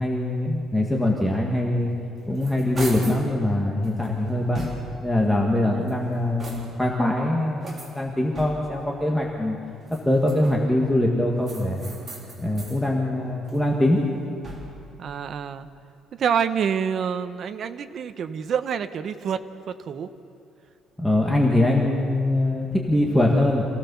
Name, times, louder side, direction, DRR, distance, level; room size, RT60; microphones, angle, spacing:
voice 1, 0.0-1.9 2.3-4.7 5.0-9.6 10.0-11.9 12.4-14.0 21.0-23.7, left 1 dB, 5° left, -2 dB, 1.7 m, -23 dB
sound 1, 1.9-3.3 3.8-5.1 5.7-6.9 7.6-8.9 9.8-10.8 11.4-12.8 13.2-14.9, right 1 dB, 20° right, 4.0 m, -40 dB
voice 2, 5.6-6.1 15.0-15.7 16.1-20.1, right 7 dB, 40° right, 10 dB, 0.9 m, -27 dB
27.0 x 16.5 x 7.0 m, 2.6 s
cardioid pair, 175°, 0 cm